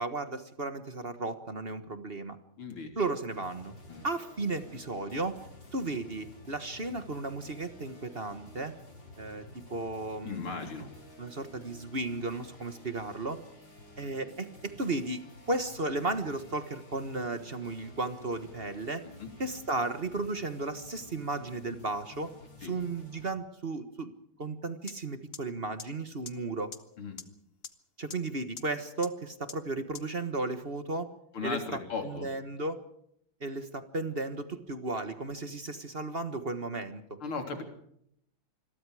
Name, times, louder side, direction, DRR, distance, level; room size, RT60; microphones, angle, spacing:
voice 1, 0.0-2.4 2.9-3.7 4.0-5.4 5.7-8.7 9.2-10.7 11.2-13.4 14.0-19.0 19.4-22.3 22.6-24.1 24.4-26.7 28.0-31.1 31.4-32.8 33.4-37.2, right 2 dB, 30° right, 10 dB, 1.4 m, -34 dB
voice 2, 2.6-2.9 3.9-4.0 10.2-10.9 19.2-19.3 22.6-22.7 27.0-27.2 31.3-32.3 37.2-37.6, left 4 dB, 85° left, 5 dB, 4.3 m, -37 dB
sound 1, 3.3-23.2, left 1 dB, 60° left, 6.4 m, -52 dB
sound 2, 24.9-25.0 25.3-25.4 25.8-25.9 26.3-26.4 26.7-26.8 27.2-27.3 27.6-27.7 28.1-28.2 28.6-28.7 29.0-29.1 29.5-29.6 29.9-30.0, left 5 dB, 35° left, 1.1 m, -40 dB
26.5 x 22.0 x 4.9 m, 0.72 s
omnidirectional pair, 2.3 m